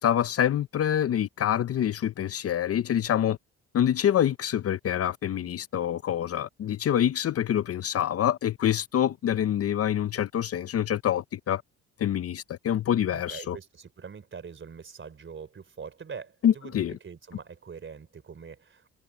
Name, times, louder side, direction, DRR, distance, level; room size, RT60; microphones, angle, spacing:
voice 1, 0.0-3.4 3.7-11.6 12.0-13.6 16.4-16.9, left 10 dB, 50° left, 0.7 m, -26 dB
voice 2, 13.1-18.9, right 6 dB, 40° right, 4.2 m, -43 dB
cardioid pair, 90°, 30 cm